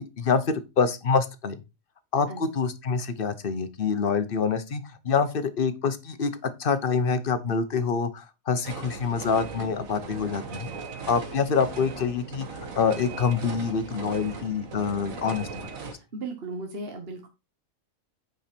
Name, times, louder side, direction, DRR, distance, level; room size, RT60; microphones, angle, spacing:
voice 1, 0.0-1.6 2.1-10.7 11.1-15.7, left 5 dB, 45° left, 11 dB, 1.0 m, -26 dB
sound 1, 8.6-15.9, right 5 dB, 85° right, 1.6 m, -39 dB
voice 2, 15.8-17.3, right 3 dB, 50° right, 3 dB, 1.5 m, -36 dB
8.6 x 5.2 x 4.4 m, 0.27 s
omnidirectional pair, 1.4 m